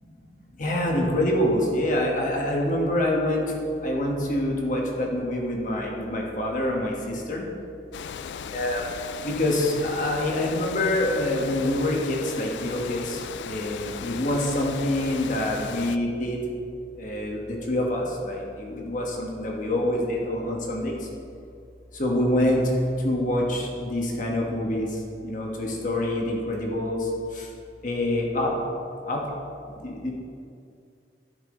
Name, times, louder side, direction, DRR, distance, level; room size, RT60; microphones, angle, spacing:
voice 1, 0.6-3.4 3.8-7.4 8.5-8.9 9.2-13.2 13.4-16.4 17.0-21.0 21.9-22.6 23.0-24.9 25.2-27.1 27.3-27.5 27.8-28.5 29.0-29.2 29.8-30.1, left 1 dB, 45° left, -1 dB, 1.4 m, -26 dB
Water, 7.9-16.0, left 7 dB, 75° left, 0.3 m, -37 dB
11.5 x 5.9 x 3.9 m, 2.4 s
head